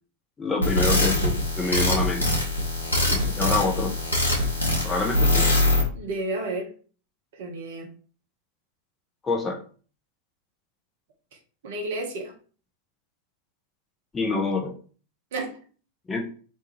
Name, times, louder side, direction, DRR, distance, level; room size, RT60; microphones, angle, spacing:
voice 1, 0.4-2.3 3.1-3.9 4.8-5.5 9.2-9.6 14.1-14.7 16.1-16.2, left 3 dB, 15° left, 1 dB, 0.5 m, -26 dB
sound 1, 0.6-5.8, left 2 dB, 80° left, 0.8 m, -23 dB
voice 2, 5.9-6.7 7.3-7.9 11.6-12.3 15.3-15.6, right 2 dB, 55° right, 2 dB, 0.7 m, -31 dB
2.6 x 2.3 x 3.0 m, 0.40 s
figure-of-eight pair, 90°, 0 cm